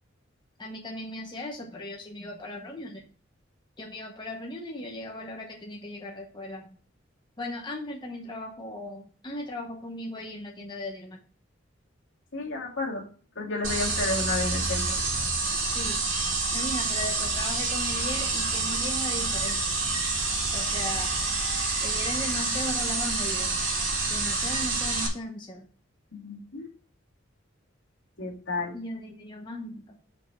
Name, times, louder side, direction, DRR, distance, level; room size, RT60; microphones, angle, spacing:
voice 1, 0.6-3.0 3.8-6.6 7.4-11.2 15.7-16.0 16.5-19.8 20.5-21.1 21.8-23.5 24.1-25.7 28.7-29.8, left 1 dB, 25° left, 0 dB, 0.9 m, -37 dB
voice 2, 12.3-13.0 13.4-15.0 26.1-26.7 28.2-28.7, left 3 dB, 75° left, -3 dB, 2.2 m, -31 dB
sound 1, 13.6-25.1, right 3 dB, 85° right, 2.4 m, -28 dB
5.2 x 4.7 x 5.8 m, 0.42 s
head